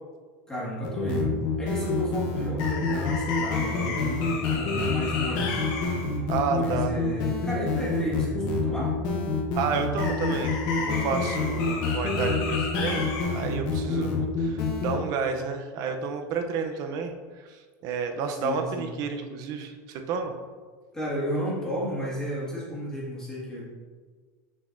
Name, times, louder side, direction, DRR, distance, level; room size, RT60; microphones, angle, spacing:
voice 1, 0.5-5.5 6.5-8.9 13.9-14.3 18.3-18.9 20.9-23.6, equal, 10° left, -7 dB, 1.7 m, -33 dB
sound 1, 0.8-15.0, left 4 dB, 55° left, 1.0 m, -27 dB
voice 2, 6.3-6.9 9.5-20.3, right 5 dB, 45° right, 5 dB, 0.6 m, -31 dB
6.3 x 6.0 x 2.6 m, 1.5 s
cardioid pair, 165°, 9 cm